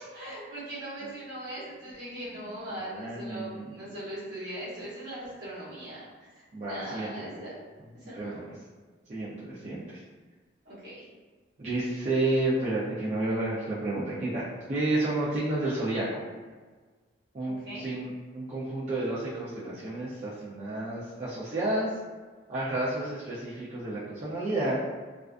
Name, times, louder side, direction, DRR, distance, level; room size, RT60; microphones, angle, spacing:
voice 1, 0.1-6.3 6.6-7.5 8.0-8.5 10.6-11.1 17.4-17.8, right 1 dB, 60° right, -9 dB, 1.0 m, -40 dB
voice 2, 2.9-3.7 6.5-7.4 8.0-8.5 9.1-10.0 11.6-14.4 14.7-16.2 17.3-21.9 22.5-24.8, right 2 dB, 35° right, -10 dB, 0.4 m, -31 dB
2.4 x 2.3 x 2.3 m, 1.4 s
head